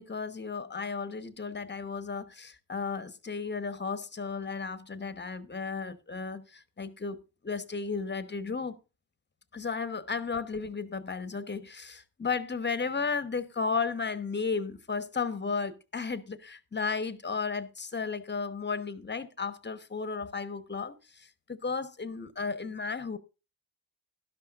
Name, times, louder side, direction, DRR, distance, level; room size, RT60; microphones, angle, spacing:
voice 1, 0.0-7.2 7.4-8.7 9.5-23.2, left 5 dB, 25° left, 1.1 m, -34 dB
12.5 x 11.5 x 2.5 m
supercardioid pair, 65°, 44 cm